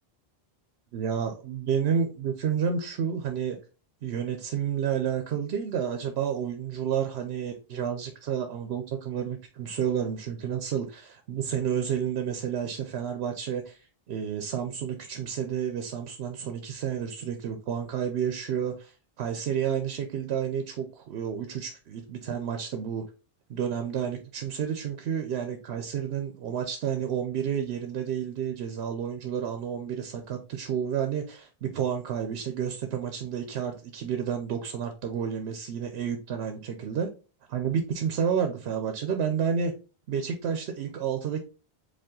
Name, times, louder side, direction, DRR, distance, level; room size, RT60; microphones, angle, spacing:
voice 1, 0.9-3.6 4.0-23.0 23.5-37.1 37.5-39.7 40.1-41.4, right 8 dB, 75° right, 6 dB, 0.8 m, -30 dB
5.0 x 2.3 x 3.7 m, 0.33 s
omnidirectional pair, 1.1 m